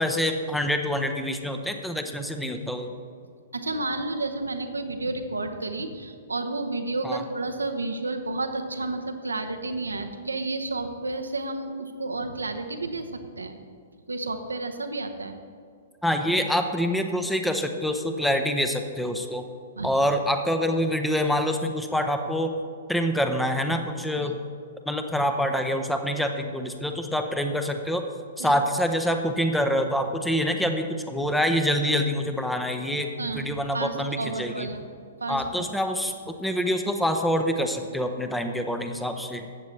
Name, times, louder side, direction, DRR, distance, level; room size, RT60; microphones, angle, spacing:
voice 1, 0.0-2.9 7.0-7.2 16.0-19.5 19.8-22.5 22.9-24.4 24.9-28.0 28.4-34.7 35.3-39.5, equal, 5° left, 6 dB, 0.7 m, -26 dB
voice 2, 3.5-13.6 14.1-15.4 19.8-19.9 24.2-24.3 28.4-28.5 33.2-34.9 35.2-35.7, right 2 dB, 80° right, 6 dB, 0.8 m, -31 dB
13.5 x 8.4 x 3.2 m, 2.3 s
figure-of-eight pair, 115°, 0 cm